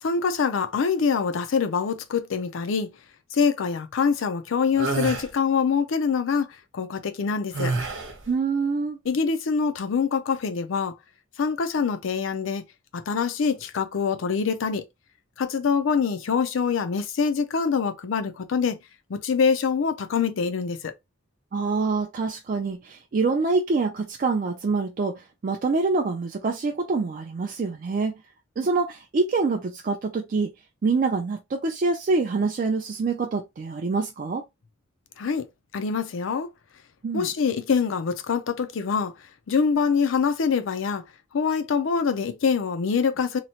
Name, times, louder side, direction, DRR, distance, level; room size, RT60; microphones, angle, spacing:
voice 1, 0.0-2.9 3.3-7.7 9.1-10.9 11.4-12.6 12.9-14.8 15.4-18.8 19.1-20.9 35.2-35.5 35.7-36.5 37.1-39.1 39.5-41.0 41.3-43.4, left 5 dB, 85° left, 0.5 m, -24 dB
sound 1, 4.8-5.3 7.5-8.2, right 3 dB, 75° right, 0.8 m, -27 dB
voice 2, 8.3-9.0 21.5-28.1 28.6-30.5 30.8-34.4 37.0-37.3, right 4 dB, 45° right, 0.4 m, -25 dB
2.9 x 2.0 x 2.8 m
head